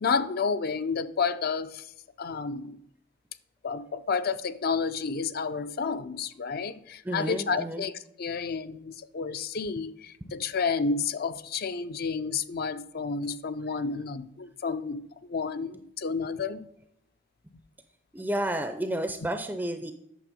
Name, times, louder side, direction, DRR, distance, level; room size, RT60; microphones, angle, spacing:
voice 1, 0.0-1.9 2.2-2.8 3.6-16.7, left 5 dB, 50° left, 0.5 m, -30 dB
voice 2, 7.0-7.9 18.1-19.9, right 1 dB, 10° right, 0.5 m, -31 dB
8.9 x 6.8 x 5.1 m
head